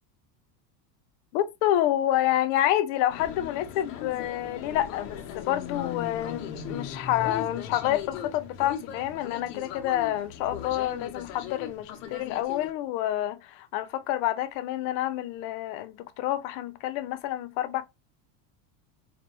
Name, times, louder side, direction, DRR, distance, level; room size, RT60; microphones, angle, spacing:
voice 1, 1.3-17.8, left 13 dB, 50° left, 0.6 m, -28 dB
sound 1, 3.1-12.7, left 8 dB, 70° left, 1.0 m, -38 dB
4.1 x 3.0 x 2.9 m
supercardioid pair, 150°, 49 cm